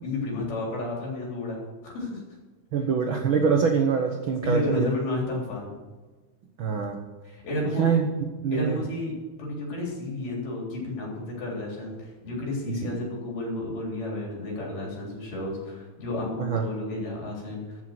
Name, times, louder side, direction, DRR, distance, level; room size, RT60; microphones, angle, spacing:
voice 1, 0.0-2.2 4.4-5.8 7.3-7.9 8.5-9.1 9.4-17.8, left 1 dB, 75° left, -3 dB, 5.3 m, -31 dB
voice 2, 2.7-4.9 6.6-7.0 7.8-8.1 8.4-8.8 16.4-16.6, right 6 dB, 80° right, 4 dB, 1.1 m, -24 dB
14.0 x 6.4 x 7.5 m, 1.3 s
omnidirectional pair, 3.8 m